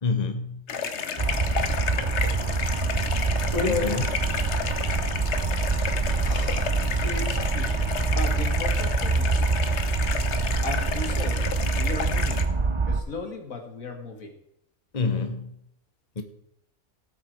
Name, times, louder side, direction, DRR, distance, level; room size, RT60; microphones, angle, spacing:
voice 1, 0.0-0.6 3.6-4.0 14.9-15.5 16.2-16.3, left 4 dB, 30° left, 1.1 m, -27 dB
sound 1, 0.7-12.4, left 6 dB, 60° left, 1.2 m, -31 dB
sound 2, 1.2-13.0, right 4 dB, 30° right, 0.6 m, -25 dB
voice 2, 3.2-4.0 6.2-9.5 10.6-11.4 11.8-12.4 12.9-14.3, left 3 dB, 80° left, 2.1 m, -34 dB
sound 3, 3.5-8.5, right 3 dB, 5° right, 1.3 m, -46 dB
17.5 x 7.1 x 4.6 m
omnidirectional pair, 1.4 m